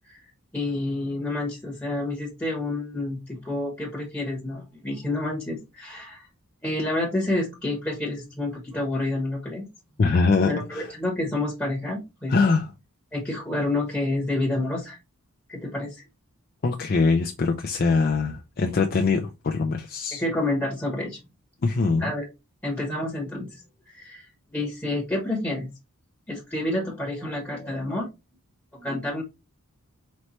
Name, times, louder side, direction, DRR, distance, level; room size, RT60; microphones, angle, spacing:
voice 1, 0.5-6.3 6.6-9.7 10.5-12.4 13.1-15.0 15.5-16.0 20.1-21.2 22.0-22.2 22.6-24.3 24.5-25.7 26.3-28.1 28.7-29.2, left 2 dB, 10° left, 1.1 m, -29 dB
voice 2, 10.0-10.9 12.3-12.7 16.6-20.2 21.6-22.1, left 4 dB, 45° left, 0.5 m, -23 dB
4.3 x 3.2 x 3.1 m
head